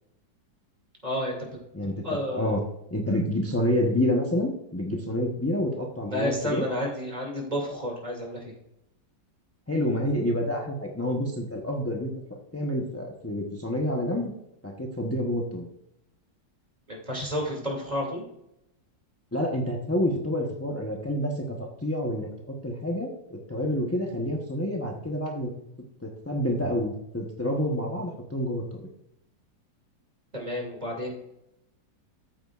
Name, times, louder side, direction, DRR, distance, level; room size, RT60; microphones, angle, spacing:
voice 1, 1.0-1.5 2.0-2.5 6.1-8.5 16.9-18.2 30.3-31.2, equal, 20° right, -1 dB, 2.5 m, -31 dB
voice 2, 1.7-2.6 2.9-6.6 9.7-14.3 14.6-15.7 19.3-25.5 26.0-28.9, left 1 dB, 15° left, 0 dB, 0.5 m, -28 dB
14.0 x 8.7 x 2.5 m, 0.82 s
omnidirectional pair, 2.1 m